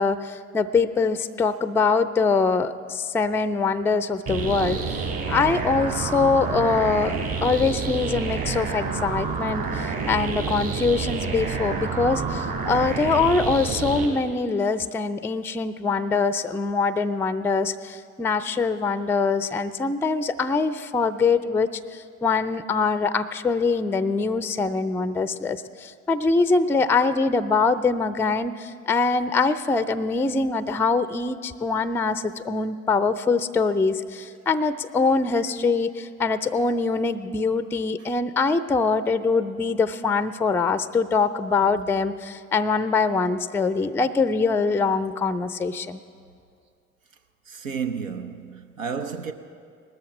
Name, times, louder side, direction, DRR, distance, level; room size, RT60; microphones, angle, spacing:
voice 1, 0.0-7.1 7.4-46.0, left 4 dB, 5° left, 0.4 m, -23 dB
sound 1, 4.3-14.1, right 5 dB, 60° right, 3.6 m, -28 dB
voice 2, 47.5-49.3, right 6 dB, 80° right, 0.7 m, -32 dB
19.0 x 13.5 x 5.0 m
figure-of-eight pair, 55°, 39 cm